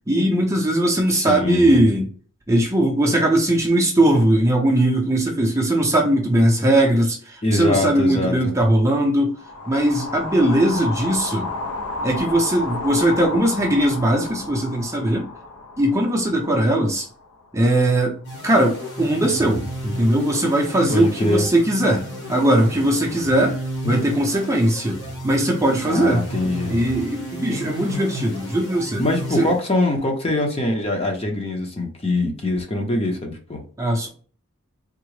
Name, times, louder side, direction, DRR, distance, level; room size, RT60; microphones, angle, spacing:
voice 1, 0.1-2.1 2.5-9.4 9.7-11.5 12.0-15.3 15.8-17.1 17.5-18.2 18.4-22.0 22.3-23.6 23.8-26.2 26.7-29.0 29.3-29.5 33.8-34.1, right 1 dB, 15° right, 0.5 m, -19 dB
voice 2, 1.1-1.8 7.4-8.5 20.9-21.5 25.9-26.8 29.0-33.6, left 2 dB, 25° left, 0.6 m, -23 dB
sound 1, 9.3-17.6, left 2 dB, 70° left, 0.5 m, -32 dB
sound 2, 18.2-30.0, equal, 50° left, 1.1 m, -33 dB
3.6 x 2.0 x 3.1 m
head